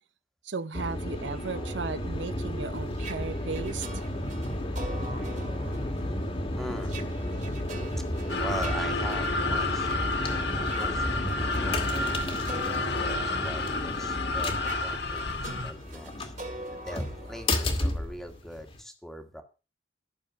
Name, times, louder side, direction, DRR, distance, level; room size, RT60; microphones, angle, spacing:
voice 1, 0.4-4.0, right 4 dB, 80° right, 0.8 m, -35 dB
sound 1, 0.7-18.8, left 1 dB, 30° left, 2.0 m, -32 dB
sound 2, 1.3-10.1 10.6-18.4, right 2 dB, 45° right, 2.3 m, -45 dB
voice 2, 6.5-7.0 8.4-9.9 10.6-11.1 11.4-12.3 12.7-16.3 16.7-19.4, equal, ahead, 1.9 m, -41 dB
sound 3, 8.3-15.7, left 3 dB, 65° left, 1.6 m, -31 dB
13.0 x 6.8 x 6.1 m
head